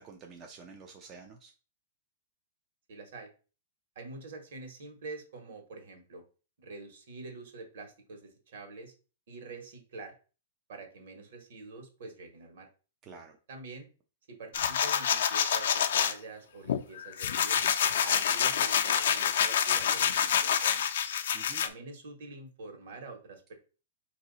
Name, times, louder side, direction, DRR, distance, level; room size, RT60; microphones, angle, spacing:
voice 1, 0.0-1.5 13.0-13.4 21.3-21.6, right 5 dB, 20° right, 3 dB, 0.4 m, -49 dB
voice 2, 2.9-3.3 3.9-6.2 6.6-8.9 9.3-10.1 10.7-12.7 13.5-13.9 14.3-17.6 18.0-20.9 21.6-23.5, right 3 dB, 60° right, 4 dB, 1.4 m, -46 dB
sound 1, 14.5-16.1 16.7-21.7, left 8 dB, 65° left, 0.5 m, -27 dB
4.6 x 2.7 x 4.0 m, 0.35 s
hypercardioid pair, 170°, 0 cm